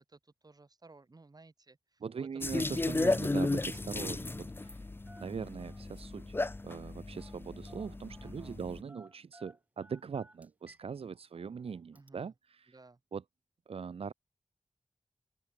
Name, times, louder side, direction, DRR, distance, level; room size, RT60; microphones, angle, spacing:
voice 1, 0.0-3.2 3.6-3.9 8.2-8.6 11.9-12.3 12.7-13.0, right 3 dB, 40° right, 1.7 m, -57 dB
voice 2, 2.0-4.8 5.2-6.3 6.6-12.7 13.1-13.2 13.7-14.1, right 6 dB, 80° right, 0.8 m, -41 dB
sound 1, 2.4-8.8, left 2 dB, 20° left, 0.4 m, -34 dB
Telephone, 2.9-3.2 3.5-4.8 5.1-6.0 7.2-7.4 7.7-8.4 8.9-10.9 11.2-11.3 12.0-12.1, right 1 dB, 15° right, 2.8 m, -58 dB
open air
cardioid pair, 50°, 10 cm